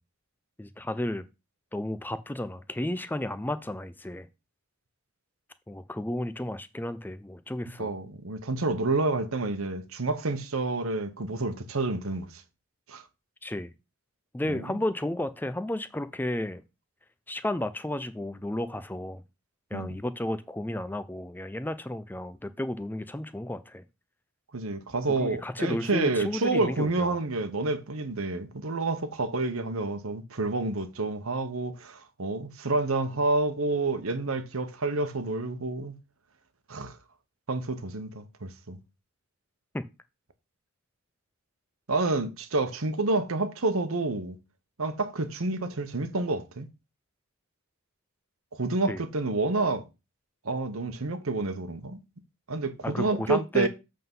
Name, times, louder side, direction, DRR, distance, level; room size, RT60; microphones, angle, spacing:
voice 1, 0.6-1.2 1.7-4.3 5.7-7.9 13.4-13.7 14.3-16.6 17.3-19.2 19.7-23.8 25.2-27.2 39.7-39.8 48.9-49.0 52.8-53.7, left 1 dB, 10° left, 0.5 m, -32 dB
voice 2, 7.8-12.4 12.9-13.0 14.5-14.8 19.7-20.0 24.5-35.9 36.7-37.0 37.5-38.8 41.9-44.4 44.8-46.7 48.5-49.8 50.4-52.0 52.5-53.7, right 3 dB, 75° right, 1.0 m, -29 dB
8.0 x 3.8 x 5.4 m
head